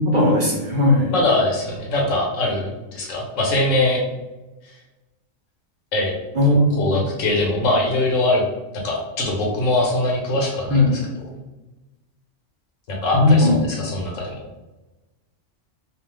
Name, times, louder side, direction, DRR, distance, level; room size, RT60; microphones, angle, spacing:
voice 1, 0.0-1.2 6.3-6.9 10.7-10.9 13.1-13.5, left 2 dB, 50° right, -4 dB, 0.6 m, -17 dB
voice 2, 1.1-4.0 4.6-4.7 5.9-6.1 6.8-8.4 8.7-10.8 12.9-13.5 13.8-14.4, left 2 dB, 80° left, -2 dB, 1.1 m, -22 dB
2.4 x 2.4 x 3.3 m, 1.1 s
omnidirectional pair, 1.3 m